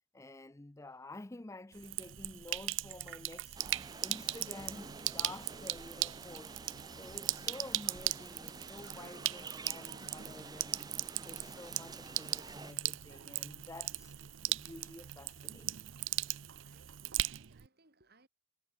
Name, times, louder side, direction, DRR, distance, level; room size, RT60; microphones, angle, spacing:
voice 1, 0.1-3.6 4.0-6.6 6.9-10.9 11.2-14.2 14.5-15.7, left 2 dB, 15° left, 0.5 m, -50 dB
Sink (filling or washing), 1.7-17.7, right 15 dB, 60° right, 0.6 m, -39 dB
sound 1, 3.6-12.7, right 3 dB, 20° right, 1.8 m, -50 dB
voice 2, 16.4-18.3, right 2 dB, 45° right, 4.0 m, -68 dB
head